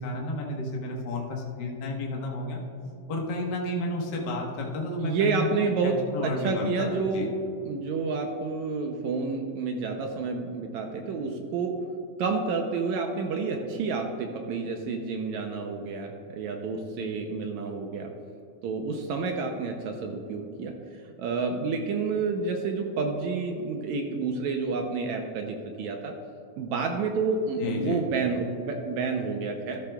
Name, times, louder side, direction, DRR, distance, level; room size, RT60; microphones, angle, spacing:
voice 1, 0.0-2.6 3.1-7.3 27.6-28.0, left 2 dB, 75° left, -1 dB, 1.0 m, -31 dB
voice 2, 5.0-7.3 7.7-11.8 12.2-18.1 18.6-26.1 26.6-29.8, right 4 dB, 80° right, 3 dB, 1.6 m, -29 dB
13.5 x 13.0 x 2.3 m, 2.7 s
omnidirectional pair, 4.1 m